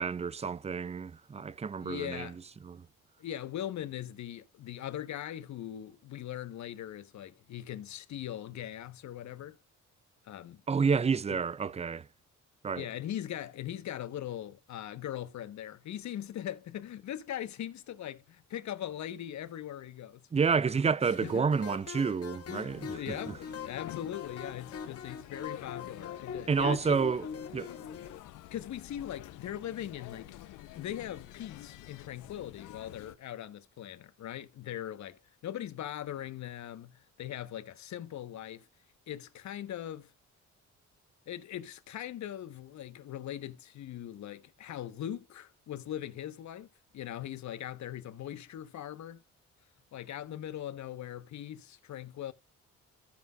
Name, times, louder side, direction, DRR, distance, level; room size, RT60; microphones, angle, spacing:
voice 1, 0.0-2.3 2.6-2.8 10.7-12.0 12.6-12.9 20.3-23.4 26.5-27.3 27.5-27.7, right 5 dB, 20° right, 0.5 m, -29 dB
voice 2, 1.8-2.4 3.2-9.6 10.2-10.6 11.3-11.4 12.7-20.2 20.8-21.5 22.5-27.0 28.5-30.3 30.7-38.7 39.1-40.1 41.3-46.7 46.9-49.2 49.9-52.3, left 11 dB, 65° left, 1.2 m, -40 dB
sound 1, 21.1-28.2, left 6 dB, 50° left, 1.7 m, -42 dB
sound 2, 22.7-33.2, left 14 dB, 90° left, 0.8 m, -49 dB
15.0 x 5.5 x 2.4 m
cardioid pair, 90°, 30 cm